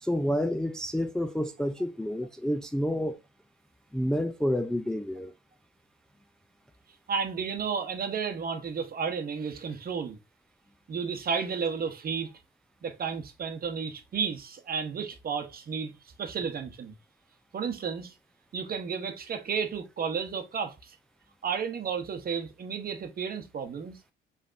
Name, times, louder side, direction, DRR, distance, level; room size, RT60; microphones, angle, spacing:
voice 1, 0.0-3.2 3.9-5.3, equal, 5° left, 0.3 m, -29 dB
voice 2, 7.1-10.2 10.9-12.3 12.8-15.9 16.2-16.9 17.5-18.1 18.5-21.0 21.4-24.0, right 6 dB, 50° right, 0.9 m, -32 dB
5.2 x 3.4 x 2.5 m
cardioid pair, 90°, 20 cm